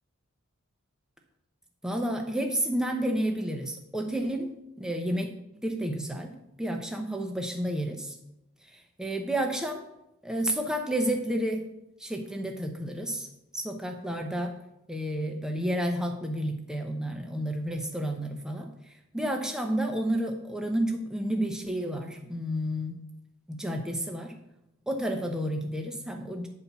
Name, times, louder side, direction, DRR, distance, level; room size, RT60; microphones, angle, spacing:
voice 1, 1.8-4.5 4.8-5.3 5.6-6.3 6.6-8.2 8.7-9.8 10.2-11.7 12.0-13.3 13.5-14.5 14.9-18.7 19.1-23.0 23.5-24.4 24.9-26.5, right 1 dB, 5° right, 3 dB, 0.8 m, -30 dB
9.5 x 4.4 x 5.6 m, 0.86 s
head